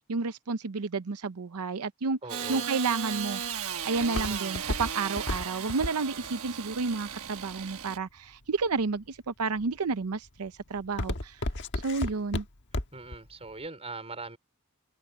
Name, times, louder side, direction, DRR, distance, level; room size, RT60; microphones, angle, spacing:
voice 1, 0.1-3.4 3.8-11.4 11.7-12.4, right 4 dB, 90° right, 0.7 m, -31 dB
voice 2, 2.2-2.7 12.9-14.4, right 3 dB, 30° right, 4.7 m, -40 dB
Engine starting / Sawing, 2.3-8.0, right 8 dB, 70° right, 1.3 m, -36 dB
Walk footsteps, 2.9-8.0 8.6-9.1 9.6-9.9 10.3-13.2 13.5-13.6, left 1 dB, 55° left, 1.4 m, -33 dB
head